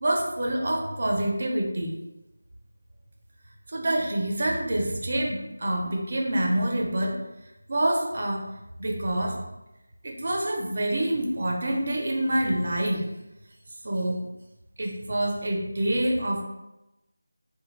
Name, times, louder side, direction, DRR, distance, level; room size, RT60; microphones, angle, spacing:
voice 1, 0.0-1.9 3.7-7.2 7.7-8.4 8.8-9.4 10.0-13.1 13.8-14.2 14.8-16.4, right 1 dB, 40° right, 0 dB, 0.5 m, -26 dB
3.2 x 2.2 x 3.1 m, 0.96 s
figure-of-eight pair, 175°, 0 cm